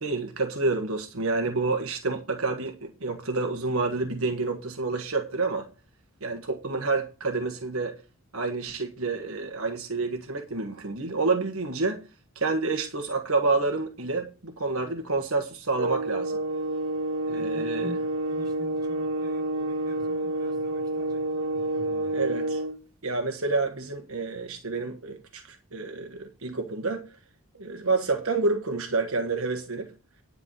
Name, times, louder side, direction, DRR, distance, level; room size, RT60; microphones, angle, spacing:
voice 1, 0.0-5.7 6.2-8.0 8.3-12.0 12.3-16.4 17.3-17.9 22.1-22.6 23.0-27.0 27.6-29.9, right 3 dB, 70° right, 1.5 m, -28 dB
sound 1, 15.7-22.8, right 2 dB, 85° right, 1.9 m, -29 dB
voice 2, 17.3-22.2, left 1 dB, 20° right, 5.2 m, -46 dB
10.5 x 4.7 x 7.5 m
head